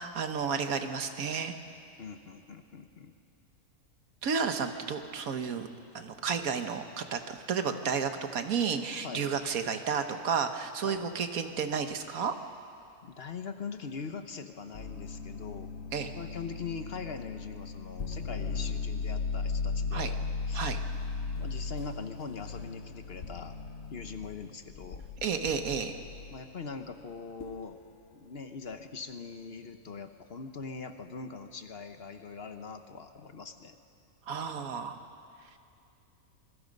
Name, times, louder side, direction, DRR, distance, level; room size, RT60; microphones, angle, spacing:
voice 1, 0.0-1.5 4.2-5.7 5.9-12.3 15.9-16.1 19.9-20.1 20.5-20.8 25.2-26.0 34.3-35.0, right 6 dB, 85° right, 7 dB, 1.6 m, -32 dB
voice 2, 2.0-3.1 9.0-9.3 10.8-11.1 13.0-20.2 20.5-20.7 21.4-23.5 23.9-25.0 26.3-27.8 28.1-33.8, left 5 dB, 50° left, 8 dB, 1.1 m, -42 dB
sound 1, 14.7-26.5 27.4-27.7, left 4 dB, 65° left, 1.4 m, -37 dB
26.5 x 21.5 x 5.3 m, 2.5 s
omnidirectional pair, 1.5 m